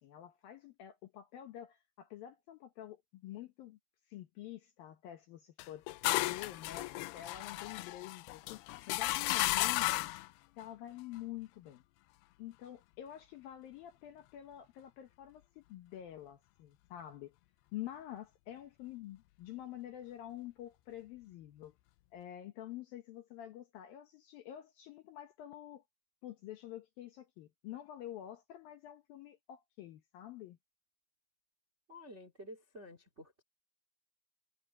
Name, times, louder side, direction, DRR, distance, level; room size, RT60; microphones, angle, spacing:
voice 1, 0.0-3.8 4.1-5.8 6.2-8.6 8.9-10.2 10.6-11.8 12.4-17.3 17.7-21.8 22.1-25.8 26.2-30.6, left 12 dB, 70° left, 2.4 m, -48 dB
sound 1, 5.6-10.3, left 19 dB, 85° left, 2.3 m, -34 dB
voice 2, 31.9-33.4, equal, 25° right, 1.5 m, -51 dB
omnidirectional pair, 5.2 m